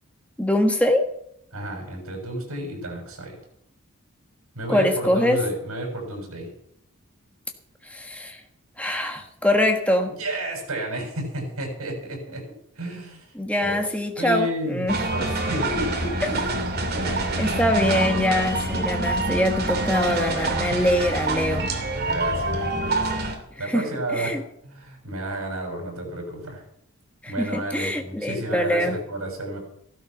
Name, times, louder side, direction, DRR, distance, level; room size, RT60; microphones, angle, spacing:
voice 1, 0.4-1.1 4.7-5.4 7.8-8.4 8.8-10.2 13.3-15.0 17.4-21.7 23.6-23.9 24.1-24.4 27.2-28.9, left 1 dB, 5° left, 3 dB, 1.4 m, -23 dB
voice 2, 1.5-3.4 4.6-6.5 10.2-12.5 12.8-13.3 13.6-13.8 14.2-16.4 16.9-18.1 20.7-20.8 22.0-23.3 23.6-26.6 27.3-29.6, right 1 dB, 75° right, 1 dB, 7.1 m, -32 dB
sound 1, 14.9-23.3, right 2 dB, 45° right, 2.8 m, -26 dB
16.0 x 12.0 x 6.0 m, 0.73 s
head